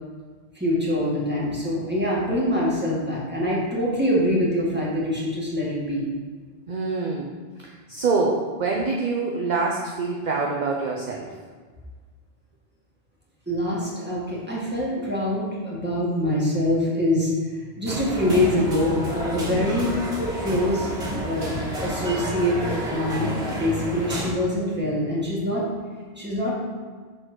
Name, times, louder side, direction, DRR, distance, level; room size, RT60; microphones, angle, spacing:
voice 1, 0.6-6.1 13.5-17.3 17.8-20.0 20.4-21.0 21.2-21.5 21.8-25.6 26.2-26.6, left 1 dB, 10° right, -6 dB, 2.0 m, -24 dB
voice 2, 6.7-7.3 7.6-11.3, right 4 dB, 45° right, -2 dB, 0.8 m, -25 dB
sound 1, 17.9-24.3, right 1 dB, 60° right, 1.9 m, -30 dB
6.7 x 4.7 x 6.1 m, 1.5 s
omnidirectional pair, 1.2 m